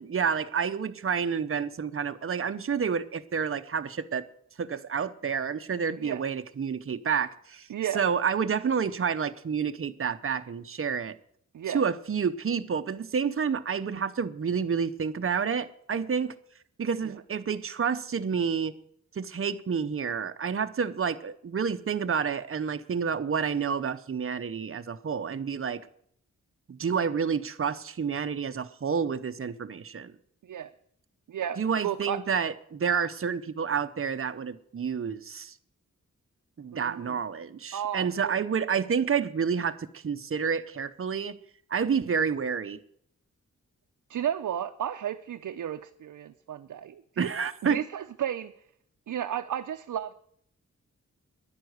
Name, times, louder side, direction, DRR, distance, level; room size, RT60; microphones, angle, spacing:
voice 1, 0.0-4.2 4.6-7.7 7.9-11.2 11.7-16.3 16.8-18.7 19.1-25.8 26.7-30.1 31.6-35.5 36.6-41.4 41.7-42.8 47.2-47.8, right 6 dB, 45° right, 0.8 m, -29 dB
voice 2, 7.7-8.0 11.5-11.8 30.4-30.7 31.3-32.2 36.7-37.2 37.7-38.4 44.1-47.3 47.6-48.5 49.1-50.1, right 10 dB, 80° right, 0.6 m, -33 dB
10.5 x 9.7 x 7.9 m
wide cardioid pair, 85°, 30 cm